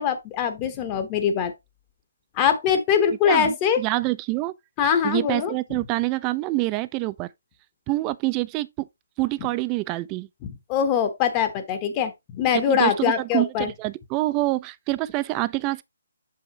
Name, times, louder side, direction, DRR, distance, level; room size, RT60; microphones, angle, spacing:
voice 1, 0.0-1.5 2.4-3.8 4.8-5.5 10.7-13.7, left 8 dB, 25° left, 0.9 m, -22 dB
voice 2, 3.3-4.5 5.0-7.3 7.9-8.9 9.2-10.3 12.5-15.8, right 20 dB, 20° right, 0.4 m, -26 dB
6.5 x 5.6 x 2.9 m
figure-of-eight pair, 150°, 0 cm